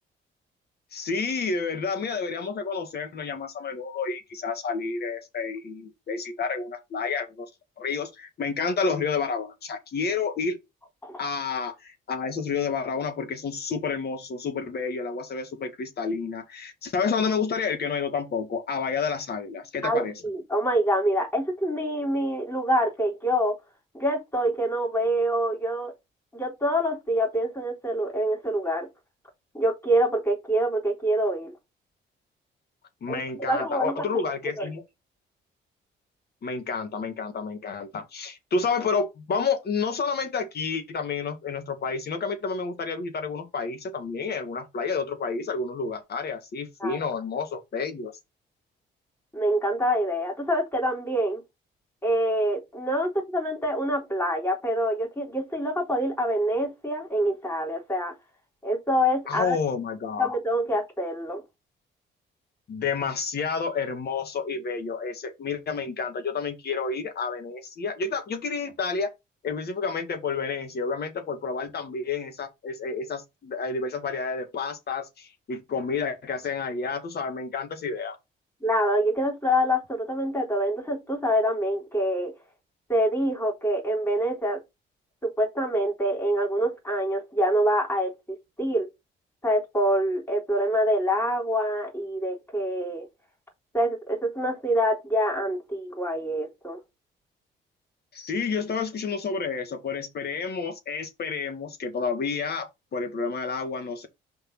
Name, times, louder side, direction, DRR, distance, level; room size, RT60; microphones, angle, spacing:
voice 1, 0.9-7.5 7.8-10.6 11.2-20.1 33.0-34.8 36.4-48.1 59.3-60.3 62.7-69.1 69.4-78.2 98.1-104.1, left 5 dB, 55° left, 1.9 m, -30 dB
voice 2, 19.8-23.5 23.9-25.9 26.3-28.9 29.5-31.5 33.1-34.1 34.6-34.7 46.8-47.0 49.3-51.4 52.0-58.1 58.6-59.6 60.2-61.4 78.6-82.3 82.9-84.6 85.2-88.9 89.4-93.1 93.7-96.8, equal, 10° left, 3.8 m, -26 dB
5.3 x 4.1 x 5.5 m
cardioid pair, 90°, 20 cm